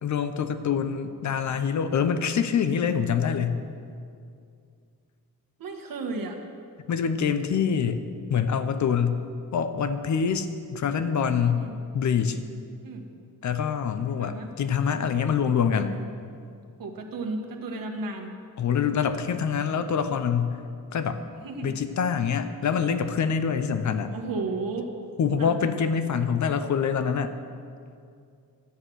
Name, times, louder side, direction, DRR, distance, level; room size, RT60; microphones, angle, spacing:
voice 1, 0.0-3.6 6.9-8.0 8.3-9.2 9.5-11.6 11.9-12.4 13.4-15.9 18.6-20.6 20.9-21.2 21.6-24.1 25.2-27.3, left 7 dB, 55° left, 10 dB, 0.8 m, -25 dB
voice 2, 5.6-6.4 11.4-11.8 12.8-13.1 14.2-14.5 16.8-18.4 21.4-21.8 24.1-24.9 25.4-25.5, right 3 dB, 70° right, 3 dB, 1.6 m, -33 dB
12.5 x 9.9 x 6.3 m, 2.4 s
wide cardioid pair, 160°, 36 cm